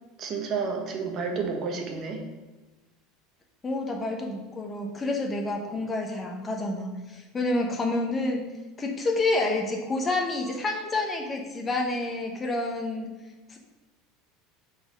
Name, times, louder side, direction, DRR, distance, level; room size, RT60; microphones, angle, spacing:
voice 1, 0.2-2.2 5.7-5.8, right 5 dB, 35° right, 3 dB, 1.1 m, -30 dB
voice 2, 3.6-8.4 8.8-13.1 13.5-13.6, left 2 dB, 15° left, 2 dB, 1.0 m, -28 dB
6.9 x 4.2 x 6.3 m, 1.2 s
cardioid pair, 160°, 0 cm